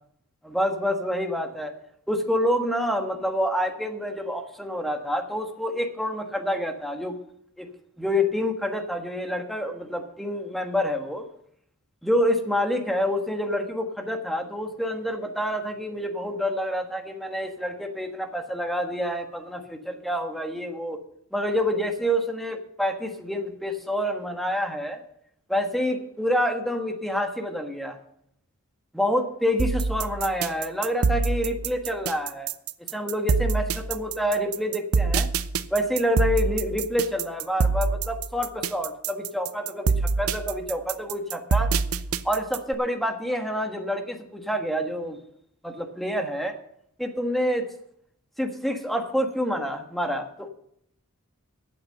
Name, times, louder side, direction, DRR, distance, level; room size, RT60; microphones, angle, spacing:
voice 1, 0.4-1.7 2.1-7.2 7.6-7.7 8.0-11.2 12.0-21.0 21.3-25.0 25.5-28.0 28.9-32.5 32.9-35.3 35.7-41.7 42.2-45.2 45.6-46.5 47.0-47.7 48.4-50.5, equal, ahead, 4 dB, 1.3 m, -27 dB
sound 1, 29.6-42.7, right 4 dB, 70° right, 0.6 m, -25 dB
12.5 x 8.5 x 6.5 m, 0.70 s
head